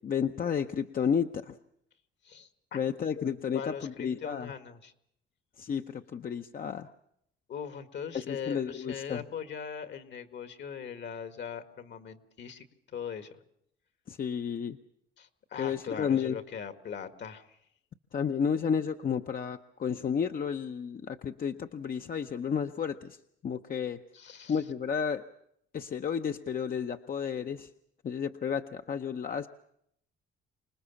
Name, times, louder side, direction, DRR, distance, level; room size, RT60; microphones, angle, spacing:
voice 1, 0.0-1.6 2.7-4.5 5.6-6.9 8.1-9.2 14.1-14.8 15.6-16.4 18.1-23.2 23.4-24.0 24.5-25.2 25.7-27.7 28.0-29.5, left 7 dB, 45° left, 6 dB, 0.8 m, -32 dB
voice 2, 2.2-2.8 3.1-4.9 7.5-13.4 15.2-17.6 24.1-24.6, left 7 dB, 65° left, 10 dB, 1.9 m, -41 dB
26.0 x 20.0 x 7.1 m, 0.73 s
cardioid pair, 90°, 20 cm